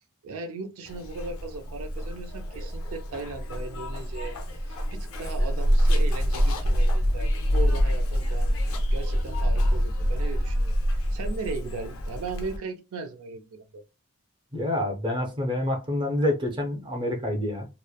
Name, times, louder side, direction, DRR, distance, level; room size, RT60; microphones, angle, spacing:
voice 1, 0.2-8.6 8.9-13.8, right 3 dB, 75° right, 0.4 m, -37 dB
Zipper (clothing), 0.9-12.6, equal, 70° left, 0.5 m, -26 dB
voice 2, 14.5-17.7, left 1 dB, 20° right, 0.5 m, -27 dB
2.9 x 2.0 x 2.2 m
head